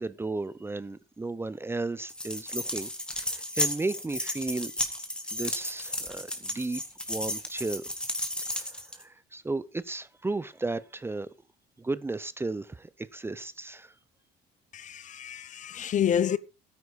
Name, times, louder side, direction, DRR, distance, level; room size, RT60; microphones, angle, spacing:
voice 1, 0.0-4.9 5.3-6.8 7.1-7.8 8.5-11.3 11.8-13.9, right 3 dB, 15° right, 0.6 m, -34 dB
sound 1, 2.1-9.0, left 1 dB, 5° left, 2.2 m, -33 dB
voice 2, 14.7-16.4, left 9 dB, 50° left, 0.8 m, -28 dB
13.0 x 9.7 x 4.1 m
cardioid pair, 110°, 17 cm